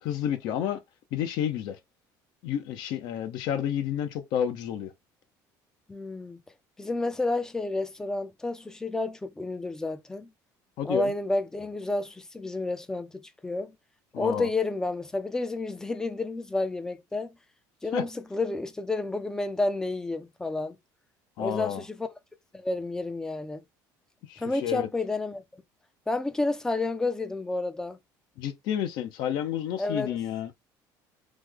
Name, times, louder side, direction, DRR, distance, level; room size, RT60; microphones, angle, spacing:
voice 1, 0.0-0.8 1.1-1.8 2.4-4.9 10.8-11.1 14.1-14.5 17.9-18.0 21.4-21.8 24.3-24.9 28.4-30.5, left 9 dB, 65° left, 0.7 m, -30 dB
voice 2, 5.9-6.4 6.8-10.3 10.8-13.7 14.2-17.3 17.8-20.8 21.4-22.1 22.5-23.6 24.4-25.6 26.1-28.0 29.8-30.2, left 2 dB, 5° left, 0.4 m, -30 dB
3.1 x 2.1 x 3.6 m
cardioid pair, 165°, 8 cm